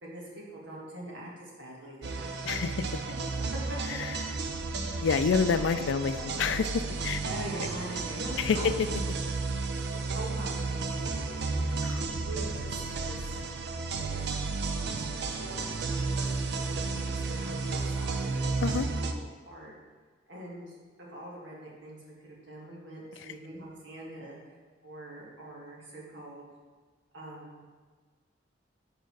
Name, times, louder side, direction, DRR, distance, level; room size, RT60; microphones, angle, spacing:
voice 1, 0.0-3.0 3.4-3.8 4.2-4.4 5.7-6.5 7.2-8.8 10.1-11.4 12.2-13.4 14.0-14.3 14.5-14.6 15.2-16.1 16.5-18.5 19.0-19.1 19.5-19.7 20.3-24.4 24.8-26.4 27.1-27.6, right 1 dB, 85° right, -4 dB, 1.6 m, -43 dB
sound 1, 2.0-19.1, right 3 dB, 65° right, 0.5 m, -32 dB
voice 2, 5.0-6.1 6.4-6.7 7.0-7.2 8.4-8.7 11.8-12.1 18.6-18.9, left 5 dB, 90° left, 11 dB, 0.4 m, -27 dB
5.1 x 4.6 x 4.7 m, 1.5 s
head